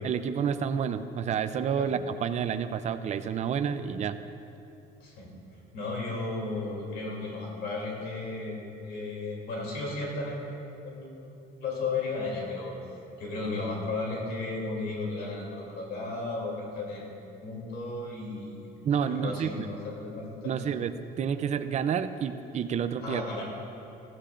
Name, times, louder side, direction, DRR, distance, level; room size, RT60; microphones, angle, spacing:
voice 1, 0.0-4.2 18.8-19.7 20.4-23.2, right 7 dB, 45° right, 11 dB, 0.5 m, -29 dB
voice 2, 5.0-5.3 5.7-8.6 8.8-11.3 11.6-12.7 13.2-18.7 19.1-20.6 23.0-23.4, left 3 dB, 75° left, -2 dB, 2.9 m, -34 dB
15.5 x 13.5 x 2.5 m, 2.9 s
cardioid pair, 110°, 17 cm